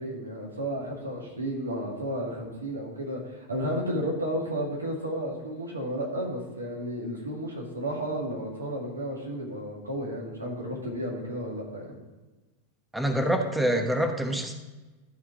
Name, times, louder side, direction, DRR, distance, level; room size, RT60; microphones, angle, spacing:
voice 1, 0.0-12.0, equal, 90° right, -1 dB, 2.0 m, -32 dB
voice 2, 12.9-14.5, right 1 dB, 5° right, 5 dB, 1.0 m, -26 dB
12.5 x 4.3 x 5.0 m, 1.2 s
hypercardioid pair, 95°, 0 cm